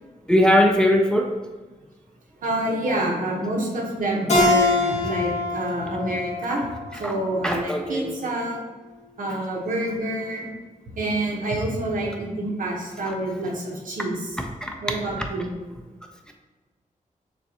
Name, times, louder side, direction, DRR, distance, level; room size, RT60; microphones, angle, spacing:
voice 1, 0.3-1.3 6.5-6.6 7.0-7.1 7.4-8.1 13.1-13.2 14.4-14.7, left 1 dB, 5° left, 2 dB, 0.4 m, -20 dB
voice 2, 2.4-6.7 6.9-8.6 9.2-10.5 10.9-14.2 14.8-15.5, right 1 dB, 80° right, -1 dB, 1.0 m, -27 dB
Keyboard (musical), 4.3-7.5, left 3 dB, 55° left, 1.1 m, -24 dB
6.5 x 2.4 x 2.8 m, 1.3 s
wide cardioid pair, 120°, 14 cm